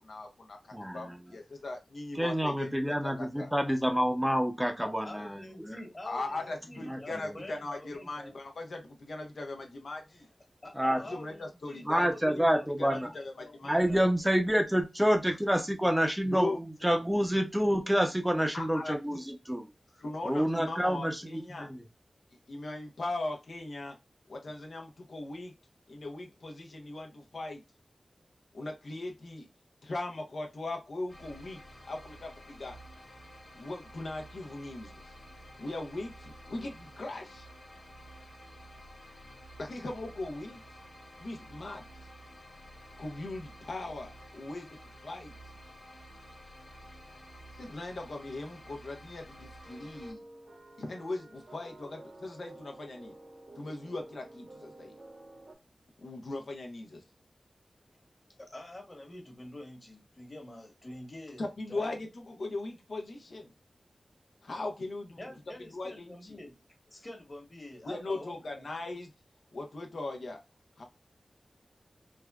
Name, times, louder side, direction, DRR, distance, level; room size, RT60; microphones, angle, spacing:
voice 1, 0.0-3.5 6.1-10.3 11.1-12.4 12.8-13.3 13.6-13.8 16.3-16.6 18.5-19.2 20.0-21.7 22.5-24.0 24.3-25.5 25.9-27.6 28.5-29.5 29.8-31.6 31.9-32.8 33.6-35.1 35.6-37.5 39.6-40.8 41.2-41.8 43.0-44.8 45.0-45.3 47.6-50.2 50.8-53.2 53.6-54.9 56.0-57.0 61.4-63.5 64.4-65.2 65.7-66.3 67.8-69.1 69.5-70.4 70.8-70.9, left 2 dB, 75° left, 3 dB, 0.6 m, -39 dB
voice 2, 0.7-1.3 2.1-5.8 6.9-7.4 10.7-11.0 11.9-13.1 13.6-19.7 20.2-21.8, equal, 5° right, 4 dB, 0.6 m, -28 dB
voice 3, 4.8-8.4 10.1-10.2 10.6-14.0 58.4-61.9 65.2-66.6 66.9-68.7, left 1 dB, 35° left, 2 dB, 1.2 m, -46 dB
sound 1, 31.1-50.1, equal, 55° left, 1.2 m, -51 dB
sound 2, 49.6-55.5, right 1 dB, 60° right, 0.9 m, -51 dB
3.4 x 2.1 x 2.3 m, 0.24 s
wide cardioid pair, 60°, 0 cm